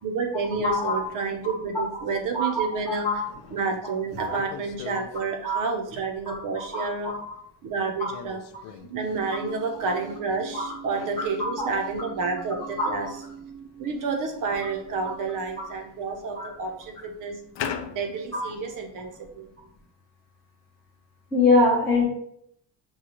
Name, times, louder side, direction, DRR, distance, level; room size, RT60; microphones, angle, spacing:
voice 1, 0.0-3.2 3.5-7.1 7.6-8.4 8.7-17.4 17.8-19.5, right 4 dB, 45° right, 3 dB, 0.7 m, -30 dB
voice 2, 0.6-1.0 2.3-3.1 4.2-4.3 5.4-5.6 6.3-6.4 6.7-7.1 8.0-8.1 10.5-10.7 11.6-11.7 12.8-12.9 16.3-16.5 17.6-17.7 18.3-18.4 21.3-22.0, left 2 dB, 5° left, -6 dB, 0.7 m, -23 dB
sound 1, 0.9-1.0 2.1-2.2 2.6-2.7 3.3-5.2 6.6-7.3 8.1-8.9 10.9-12.4 12.6-12.7 14.1-14.2 14.9-15.0 15.5-16.4 17.5-18.2, left 8 dB, 75° left, 0.5 m, -39 dB
6.4 x 2.3 x 2.9 m, 0.71 s
cardioid pair, 170°, 44 cm